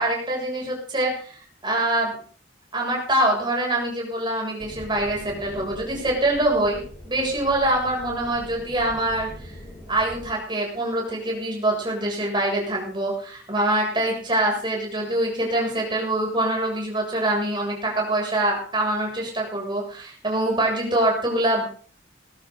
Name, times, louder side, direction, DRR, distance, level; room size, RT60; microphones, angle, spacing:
voice 1, 0.0-2.1 2.7-9.6 9.9-21.7, right 1 dB, 25° right, -1 dB, 7.4 m, -24 dB
sound 1, 4.6-10.4, left 1 dB, 20° left, 4.3 m, -42 dB
20.0 x 13.0 x 4.1 m, 0.43 s
head